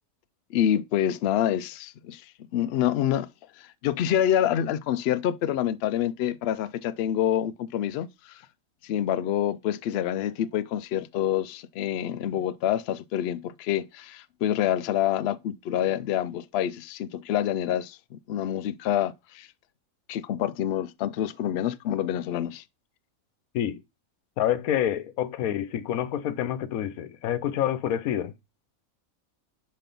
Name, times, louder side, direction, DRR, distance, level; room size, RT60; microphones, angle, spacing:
voice 1, 0.5-2.3 2.5-3.3 3.6-8.4 8.8-19.5 20.1-22.6, left 11 dB, 65° left, 0.6 m, -27 dB
voice 2, 24.4-28.3, left 10 dB, 85° left, 1.2 m, -27 dB
5.9 x 5.4 x 5.2 m
omnidirectional pair, 1.5 m